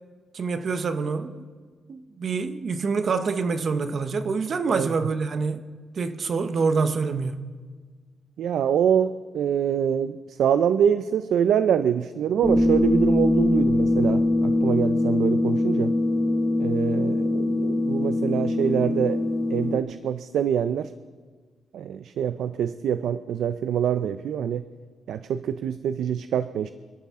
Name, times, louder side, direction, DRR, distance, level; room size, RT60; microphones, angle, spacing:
voice 1, 0.3-1.5 1.9-5.6 6.0-7.5, right 4 dB, 40° right, 0.8 m, -26 dB
voice 2, 4.7-5.1 8.4-15.9 16.6-19.2 19.5-20.9 21.7-24.7 25.1-26.7, right 8 dB, 80° right, 0.4 m, -25 dB
sound 1, 12.4-19.8, left 2 dB, ahead, 1.2 m, -22 dB
28.0 x 11.5 x 3.6 m
wide cardioid pair, 165°, 0 cm